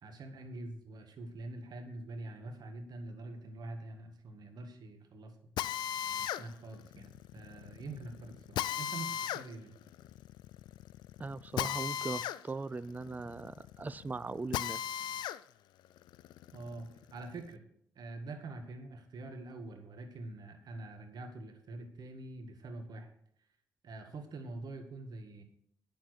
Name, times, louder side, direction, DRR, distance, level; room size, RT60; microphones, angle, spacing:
voice 1, 0.0-5.4 6.4-9.7 16.5-17.6 18.0-23.1 23.8-25.4, right 2 dB, 60° right, 5 dB, 1.8 m, -45 dB
Drill, 5.6-15.4 15.8-17.5, left 11 dB, 75° left, 0.4 m, -38 dB
voice 2, 11.2-15.1, right 3 dB, 20° right, 17 dB, 0.4 m, -40 dB
8.7 x 7.1 x 6.3 m, 0.69 s
supercardioid pair, 50°, 8 cm